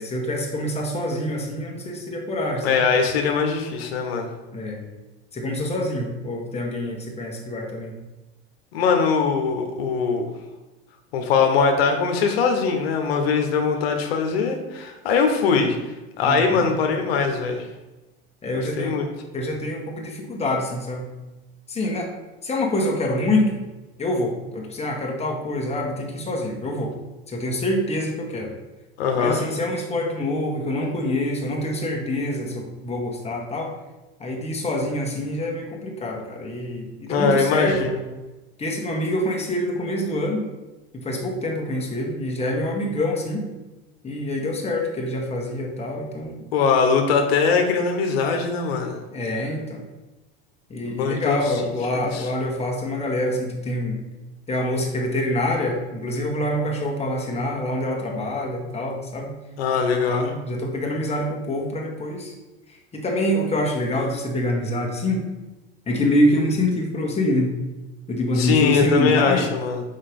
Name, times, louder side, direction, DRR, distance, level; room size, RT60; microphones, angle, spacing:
voice 1, 0.0-2.8 4.5-4.8 5.3-7.9 16.2-16.7 18.4-19.0 19.3-21.1 21.7-22.1 22.4-23.6 24.0-26.9 27.3-28.5 29.2-33.7 34.2-37.8 38.6-40.4 40.9-43.4 44.0-46.5 49.1-49.8 50.7-54.0 54.5-59.3 60.1-62.3 62.9-65.2 65.9-67.6 68.1-69.5, left 1 dB, 20° left, 0 dB, 1.7 m, -26 dB
voice 2, 2.6-4.3 8.7-10.3 11.1-15.8 16.2-17.7 18.5-19.0 29.0-29.4 37.1-38.0 46.5-48.9 50.8-51.4 51.9-52.3 59.6-60.3 68.4-69.8, left 5 dB, 85° left, 4 dB, 1.0 m, -21 dB
5.6 x 4.6 x 5.2 m, 1.1 s
supercardioid pair, 100°, 30 cm